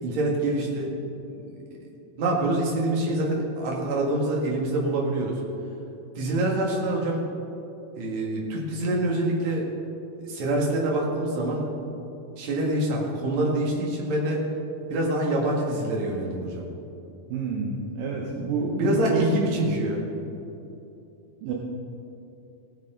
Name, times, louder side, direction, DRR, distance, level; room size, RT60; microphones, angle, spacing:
voice 1, 0.0-0.9 1.5-1.6 2.2-5.4 6.2-7.2 7.9-9.7 10.2-11.7 12.4-14.4 14.9-16.7 18.7-20.0, right 1 dB, 50° right, -2 dB, 2.5 m, -25 dB
voice 2, 17.3-19.2 21.4-21.5, right 4 dB, 75° right, -1 dB, 2.1 m, -28 dB
17.5 x 8.8 x 3.8 m, 2.9 s
omnidirectional pair, 4.9 m